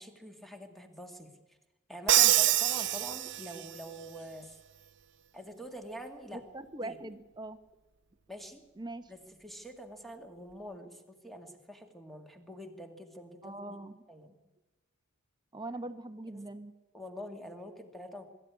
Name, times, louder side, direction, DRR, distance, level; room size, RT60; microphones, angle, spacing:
voice 1, 0.0-1.6 1.9-4.6 5.3-6.4 6.8-7.0 8.3-8.6 9.1-13.8 14.1-14.4 16.3-16.5 16.9-18.2, equal, ahead, 5 dB, 2.1 m, -46 dB
Crash cymbal, 2.1-3.8, right 14 dB, 55° right, 0.7 m, -25 dB
voice 2, 6.3-7.6 8.8-9.1 13.4-14.0 15.5-16.7, right 2 dB, 20° right, 10 dB, 1.0 m, -41 dB
21.5 x 13.5 x 9.6 m, 1.1 s
head